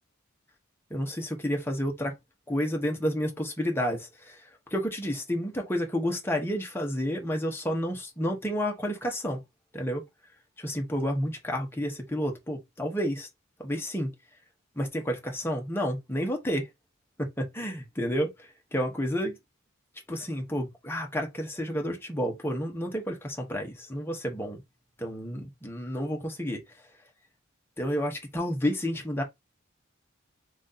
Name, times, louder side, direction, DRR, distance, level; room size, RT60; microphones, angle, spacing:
voice 1, 0.9-2.1 2.5-4.4 4.7-9.4 9.7-10.0 10.6-13.3 13.6-14.1 14.8-16.7 17.2-19.3 20.1-24.6 25.0-26.6 27.8-29.2, equal, 10° left, 1.3 m, -30 dB
3.8 x 3.2 x 4.0 m
head